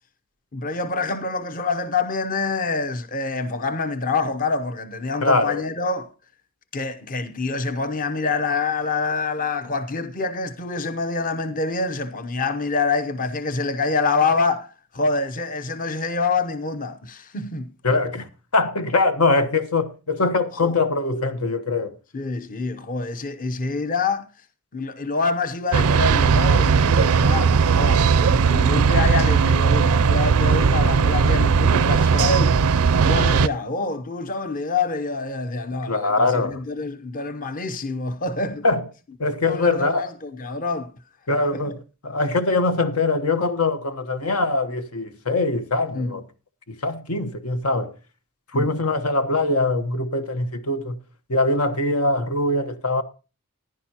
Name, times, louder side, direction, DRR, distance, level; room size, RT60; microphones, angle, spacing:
voice 1, 0.5-6.1 6.7-17.7 20.6-20.8 22.1-24.3 24.7-32.5 33.0-38.6 39.5-40.9 41.3-41.7 45.9-46.2 48.5-48.7, left 3 dB, 40° left, 0.8 m, -26 dB
voice 2, 5.2-5.6 17.8-21.9 33.2-33.3 35.9-36.6 38.6-38.8 39.2-40.0 41.3-46.2 46.7-47.9 48.5-51.0 51.3-53.0, left 3 dB, 80° left, 1.2 m, -22 dB
sound 1, 25.7-33.5, right 5 dB, 75° right, 0.5 m, -18 dB
15.0 x 11.0 x 2.9 m
head